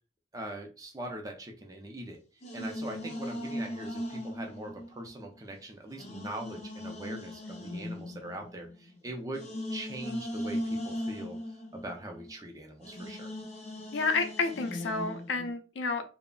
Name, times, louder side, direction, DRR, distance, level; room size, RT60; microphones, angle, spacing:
voice 1, 0.3-2.2 2.5-9.4 9.7-13.3, right 1 dB, 20° right, 0.4 m, -42 dB
sound 1, 2.4-5.4 5.9-12.5 12.8-15.5, left 1 dB, 35° left, 0.6 m, -38 dB
voice 2, 13.9-16.0, left 4 dB, 85° left, 0.5 m, -30 dB
3.6 x 2.0 x 2.3 m
head